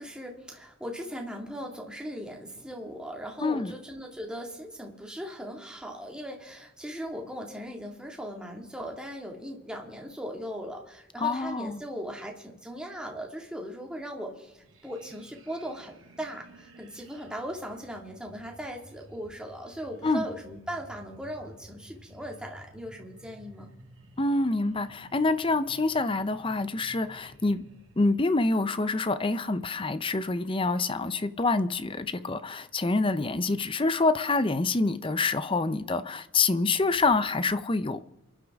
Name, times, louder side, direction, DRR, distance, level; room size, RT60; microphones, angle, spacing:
voice 1, 0.0-23.7, equal, 5° right, 0 dB, 2.1 m, -39 dB
voice 2, 3.4-3.7 11.2-11.8 20.0-20.2 24.2-27.6 28.0-38.0, left 3 dB, 25° left, 13 dB, 0.6 m, -26 dB
sound 1, 14.6-28.1, right 1 dB, 70° right, 2.5 m, -54 dB
27.5 x 11.5 x 3.6 m, 0.94 s
head